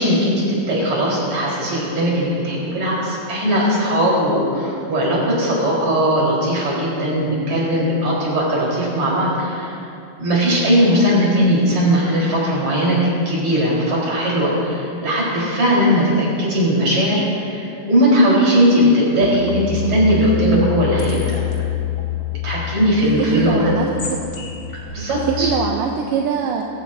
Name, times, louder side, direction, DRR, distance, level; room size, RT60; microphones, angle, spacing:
voice 1, 0.0-9.8 10.2-13.0 13.3-21.2 22.4-23.7 24.9-25.5, equal, 55° right, -5 dB, 5.7 m, -18 dB
sound 1, 19.2-25.5, left 11 dB, 45° left, 1.5 m, -27 dB
voice 2, 23.3-24.3 25.3-26.7, right 7 dB, 80° right, 1 dB, 2.4 m, -23 dB
22.5 x 17.0 x 2.8 m, 2.6 s
omnidirectional pair, 3.9 m